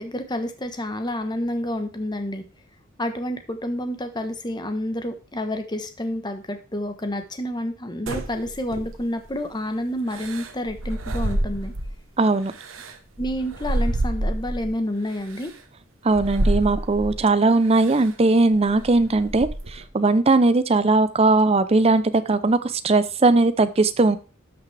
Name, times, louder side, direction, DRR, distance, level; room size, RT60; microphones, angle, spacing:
voice 1, 0.0-2.4 3.0-11.7 13.2-15.5, left 1 dB, 20° left, 7 dB, 1.1 m, -29 dB
sound 1, 8.1-9.2 10.1-12.0 12.5-14.7 15.3-15.5 16.1-17.2 17.8-18.1 18.5-19.9, right 1 dB, 80° right, 1.1 m, -28 dB
voice 2, 12.2-12.5 16.0-24.2, right 3 dB, 30° right, 12 dB, 0.6 m, -19 dB
12.5 x 5.9 x 3.3 m, 0.34 s
head